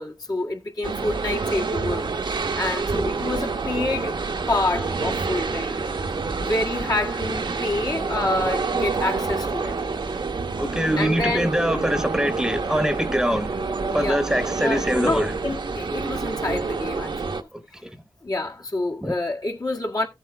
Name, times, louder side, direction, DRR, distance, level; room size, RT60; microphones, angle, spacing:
voice 1, 0.0-4.2 4.5-5.7 6.4-9.7 11.0-11.5 13.9-17.2 18.2-20.1, left 2 dB, 55° left, 1.9 m, -28 dB
sound 1, 0.8-17.4, right 4 dB, 75° right, 1.0 m, -28 dB
voice 2, 10.6-13.6 13.9-15.3 17.5-17.9 19.0-19.1, equal, 5° right, 1.0 m, -24 dB
15.0 x 8.1 x 2.3 m
wide cardioid pair, 95°, 8 cm